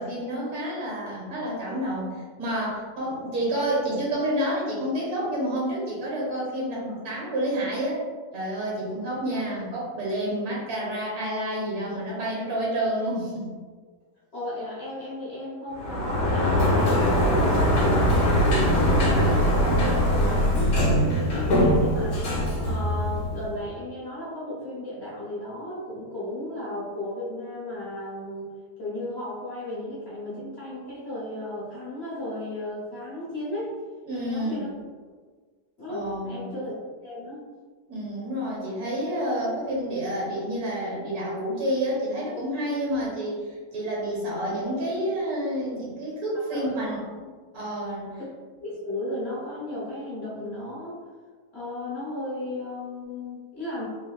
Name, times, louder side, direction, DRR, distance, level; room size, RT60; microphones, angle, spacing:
voice 1, 0.0-2.1 2.4-8.0 8.3-13.5 20.1-20.7 34.0-34.6 35.9-36.5 37.9-48.1, right 1 dB, 65° right, -5 dB, 1.4 m, -29 dB
voice 2, 14.3-19.3 19.8-20.8 21.2-22.3 22.6-28.5 28.8-33.7 34.1-34.7 35.8-36.7 37.0-37.4 46.5-47.0 48.6-51.0 51.5-53.8, left 1 dB, 40° left, -9 dB, 1.3 m, -35 dB
Sliding door, 15.7-23.5, equal, 65° left, 1.3 m, -22 dB
3.4 x 3.3 x 2.3 m, 1.5 s
omnidirectional pair, 1.8 m